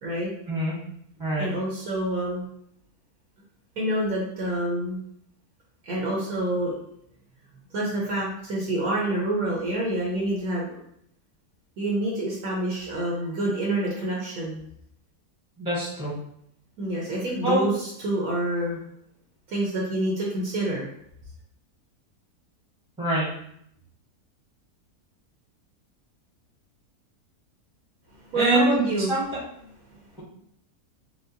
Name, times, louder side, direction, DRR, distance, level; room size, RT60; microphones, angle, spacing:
voice 1, 0.0-0.3 1.4-2.5 3.8-5.0 5.8-6.7 7.7-10.8 11.8-14.6 16.8-18.8 19.5-20.9 28.3-29.1 29.9-30.0, right 1 dB, 70° right, -4 dB, 1.2 m, -27 dB
voice 2, 15.6-16.1 17.4-17.7 23.0-23.3 28.3-29.2, right 2 dB, 5° right, -7 dB, 0.9 m, -24 dB
4.4 x 2.0 x 2.7 m, 0.72 s
omnidirectional pair, 1.6 m